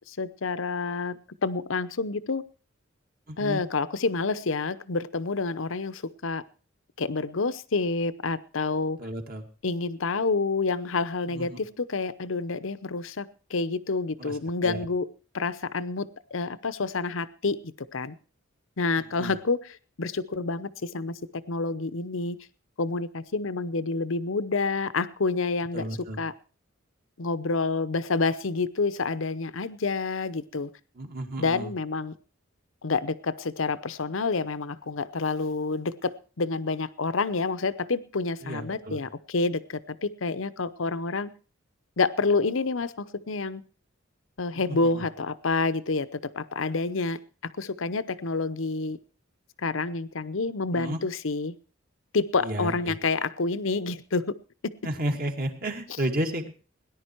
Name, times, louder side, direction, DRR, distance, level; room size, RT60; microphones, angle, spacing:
voice 1, 0.2-2.4 3.4-6.4 7.0-9.0 9.6-13.3 13.5-15.1 15.3-17.6 17.9-18.2 18.8-19.6 20.0-21.1 21.5-22.4 22.8-25.8 26.2-26.3 27.2-30.7 31.4-32.1 32.8-41.3 42.0-43.6 44.4-47.2 47.6-49.0 49.6-51.5 52.1-54.4 54.6-54.7, left 3 dB, 70° left, 14 dB, 0.8 m, -28 dB
voice 2, 3.3-3.6 9.0-9.5 11.2-11.6 14.2-14.8 18.9-19.4 25.7-26.2 30.9-31.7 38.4-39.1 44.5-45.0 50.7-51.0 52.4-53.0 54.8-56.5, right 1 dB, 45° right, 4 dB, 2.2 m, -33 dB
18.0 x 10.5 x 4.6 m, 0.38 s
head